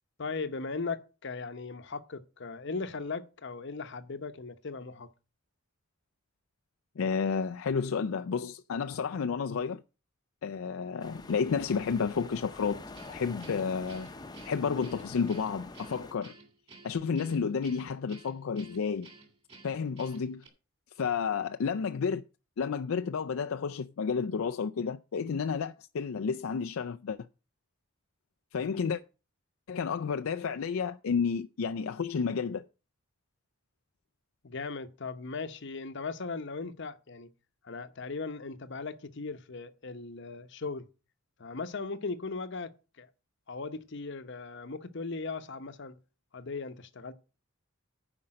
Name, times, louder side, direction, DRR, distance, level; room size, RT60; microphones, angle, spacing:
voice 1, 0.2-5.1 34.4-37.3 37.6-40.9 41.4-43.1 43.5-46.0 46.3-47.1, left 4 dB, 55° left, 0.8 m, -38 dB
voice 2, 7.0-9.8 10.4-12.8 13.1-14.1 14.4-16.3 16.8-19.1 19.6-20.4 21.0-22.2 22.6-27.3 28.5-29.0 29.7-32.6, left 6 dB, 75° left, 0.4 m, -31 dB
sound 1, 11.0-16.1, left 2 dB, 20° left, 0.8 m, -46 dB
Guitar, 12.9-20.5, right 3 dB, 30° right, 2.9 m, -54 dB
9.8 x 5.2 x 7.6 m
head